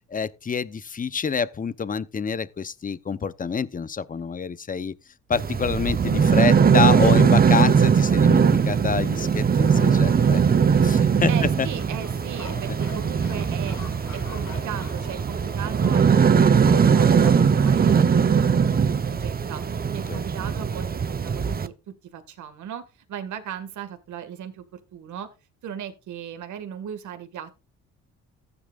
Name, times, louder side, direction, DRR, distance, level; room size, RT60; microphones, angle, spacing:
voice 1, 0.1-4.9 5.3-10.4 10.8-11.3 11.6-11.7 20.1-20.2, left 6 dB, 25° left, 0.8 m, -27 dB
sound 1, 5.3-21.7, right 6 dB, 30° right, 0.9 m, -20 dB
sound 2, 8.1-15.6, right 5 dB, 45° right, 3.1 m, -42 dB
sound 3, 9.6-17.5, left 5 dB, 85° left, 3.8 m, -45 dB
voice 2, 11.3-13.8 14.1-25.3 25.6-27.5, right 8 dB, 75° right, 2.0 m, -37 dB
14.5 x 9.9 x 2.5 m
cardioid pair, 90°, 30 cm